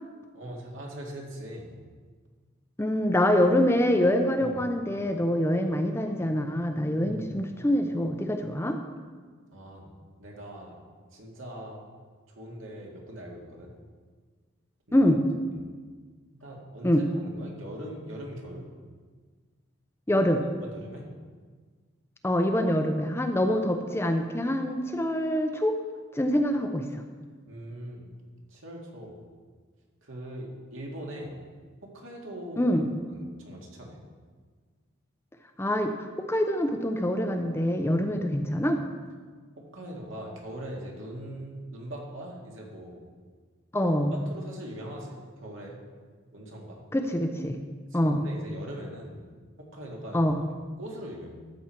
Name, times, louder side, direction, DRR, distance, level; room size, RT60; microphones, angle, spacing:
voice 1, 0.3-1.7 4.4-4.6 7.0-7.4 9.5-9.9 10.2-10.8 11.1-11.8 12.3-13.7 14.9-15.0 16.3-18.7 20.6-21.1 27.5-28.1 28.5-29.2 30.0-31.4 31.8-32.7 33.1-34.0 39.6-43.0 44.3-45.8 46.3-46.8 47.9-49.3 49.6-50.2 50.8-51.3, right 1 dB, 75° right, -1 dB, 2.0 m, -41 dB
voice 2, 2.8-8.8 14.9-15.2 16.8-17.0 20.1-20.4 22.2-25.8 26.1-27.0 32.6-32.9 35.6-38.8 43.7-44.1 46.9-47.6 47.9-48.2 50.1-50.5, left 1 dB, 10° left, 5 dB, 0.5 m, -25 dB
13.0 x 7.1 x 4.5 m, 1.5 s
head